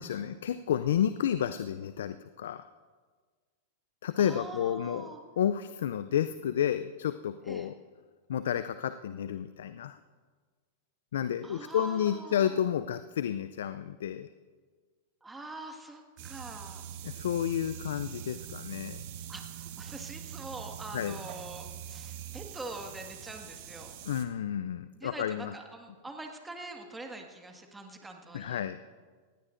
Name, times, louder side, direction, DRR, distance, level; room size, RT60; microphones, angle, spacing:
voice 1, 0.0-2.7 4.0-7.7 8.3-10.0 11.1-14.3 17.0-19.0 20.9-21.2 24.0-25.5 28.3-28.8, left 9 dB, 75° left, 12 dB, 0.4 m, -31 dB
voice 2, 4.2-5.2 7.4-7.7 11.4-12.6 15.2-16.9 19.3-23.9 24.9-28.7, right 2 dB, 10° right, 3 dB, 1.7 m, -44 dB
sound 1, 16.2-24.2, right 9 dB, 60° right, 1.3 m, -43 dB
19.5 x 16.0 x 2.6 m, 1.5 s
hypercardioid pair, 100°, 0 cm